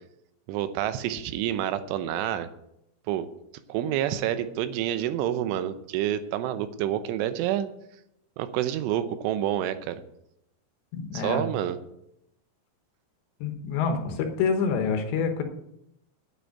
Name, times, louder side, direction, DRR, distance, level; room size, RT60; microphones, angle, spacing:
voice 1, 0.5-2.5 3.1-3.3 3.7-7.7 8.4-10.0 11.1-11.8, right 11 dB, 85° right, 11 dB, 3.2 m, -28 dB
voice 2, 10.9-11.4 13.4-15.4, left 5 dB, 75° left, 5 dB, 3.2 m, -27 dB
9.0 x 7.9 x 9.3 m, 0.80 s
omnidirectional pair, 5.6 m